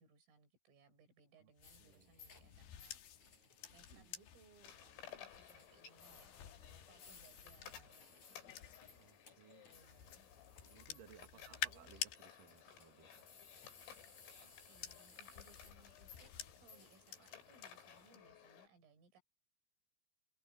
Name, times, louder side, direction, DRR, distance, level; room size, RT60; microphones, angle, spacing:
voice 1, 0.0-3.0 3.7-8.8 9.7-10.3 11.3-12.1 14.4-19.2, right 4 dB, 90° right, 8.5 m, -68 dB
sound 1, 1.6-9.1 9.7-12.2 13.4-17.7 18.0-18.4, left 11 dB, 65° left, 3.3 m, -51 dB
sound 2, 1.6-18.1, left 5 dB, 35° left, 7.0 m, -63 dB
voice 2, 1.8-2.1 3.9-4.1 9.0-9.7 10.6-13.3, right 9 dB, 55° right, 3.0 m, -63 dB
sound 3, 4.6-18.7, left 9 dB, 85° left, 6.7 m, -59 dB
omnidirectional pair, 5.7 m